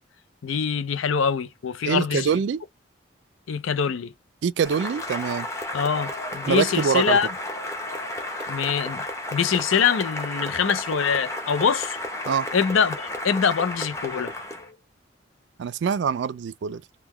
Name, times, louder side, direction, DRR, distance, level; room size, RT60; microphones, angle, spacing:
voice 1, 0.4-2.3 3.5-4.1 5.7-7.3 8.5-9.0 9.3-12.0 12.5-14.8, left 6 dB, 85° left, 0.5 m, -24 dB
voice 2, 1.9-2.6 4.4-5.5 6.5-7.2 12.3-12.5 15.6-16.8, right 6 dB, 65° right, 0.3 m, -24 dB
Cheering / Applause, 4.6-14.7, left 1 dB, 15° left, 0.7 m, -32 dB
3.7 x 2.2 x 2.9 m
head